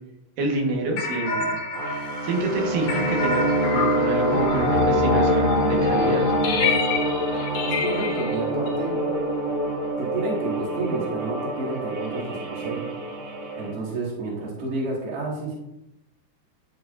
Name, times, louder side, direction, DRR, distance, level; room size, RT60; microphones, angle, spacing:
voice 1, 0.4-1.6 2.2-6.2, right 2 dB, 85° right, 0 dB, 3.1 m, -27 dB
sound 1, 1.0-9.9, left 4 dB, 75° left, 2.5 m, -26 dB
sound 2, 1.8-13.7, right 2 dB, 70° right, 3.0 m, -27 dB
voice 2, 7.6-9.0 10.0-12.9 13.6-15.6, right 2 dB, 55° right, -4 dB, 2.8 m, -30 dB
10.5 x 5.8 x 2.6 m, 0.86 s
omnidirectional pair, 3.7 m